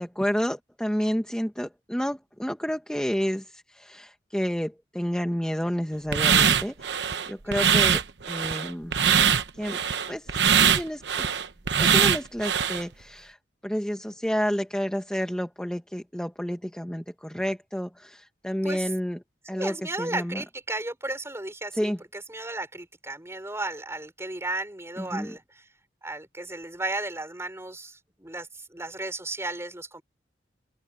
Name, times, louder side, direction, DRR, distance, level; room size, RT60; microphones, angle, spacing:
voice 1, 0.0-9.0 9.5-9.8 10.1-10.3 10.6-11.0 11.8-13.4 13.6-19.2 19.5-20.4 21.7-22.0 25.0-25.3, equal, 5° left, 1.3 m, -30 dB
sound 1, 6.1-12.8, right 7 dB, 70° right, 1.0 m, -22 dB
voice 2, 19.5-25.6 26.0-30.0, right 2 dB, 15° right, 4.8 m, -34 dB
open air
head